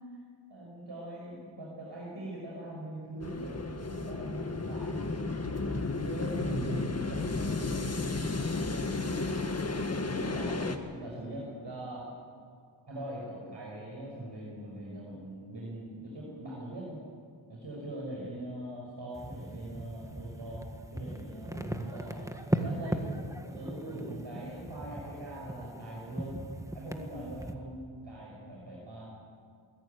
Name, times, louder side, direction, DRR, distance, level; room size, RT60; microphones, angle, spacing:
voice 1, 0.5-5.0 6.0-9.7 10.1-12.0 12.8-17.0 17.5-22.2 22.6-23.0 23.4-29.1, right 1 dB, 60° right, -4 dB, 5.8 m, -42 dB
sound 1, 3.2-10.8, left 3 dB, 30° left, 1.7 m, -33 dB
sound 2, 19.1-27.5, right 1 dB, 5° right, 1.6 m, -38 dB
21.5 x 15.0 x 9.6 m, 2.1 s
wide cardioid pair, 65°, 48 cm